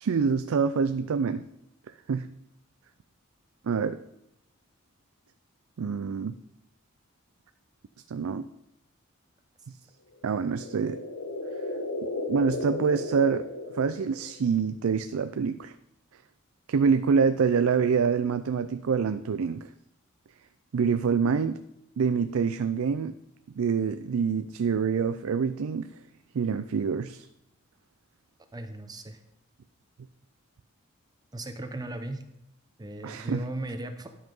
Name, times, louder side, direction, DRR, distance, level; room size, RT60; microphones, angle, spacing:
voice 1, 0.0-1.4 2.1-2.3 3.6-4.0 5.8-6.4 8.1-8.5 10.2-11.0 12.3-13.5 13.7-15.7 16.7-19.7 20.7-21.6 22.0-23.1 23.6-25.9 26.3-27.3 33.0-33.4, right 6 dB, 75° right, 11 dB, 0.4 m, -26 dB
sound 1, 10.2-14.4, left 2 dB, 85° left, 1.2 m, -35 dB
voice 2, 28.5-29.2 31.3-32.2 32.8-34.1, right 1 dB, 20° right, 7 dB, 0.7 m, -37 dB
12.0 x 5.6 x 5.3 m, 0.82 s
head